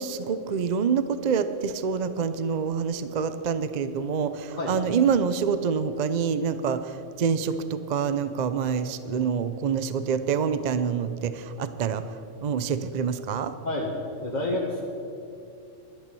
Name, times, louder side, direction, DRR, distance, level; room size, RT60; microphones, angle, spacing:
voice 1, 0.0-12.0 12.4-13.5, right 6 dB, 50° right, 11 dB, 0.5 m, -26 dB
voice 2, 14.2-14.8, left 2 dB, 35° left, -4 dB, 1.6 m, -28 dB
12.0 x 11.5 x 6.8 m, 2.6 s
omnidirectional pair, 1.3 m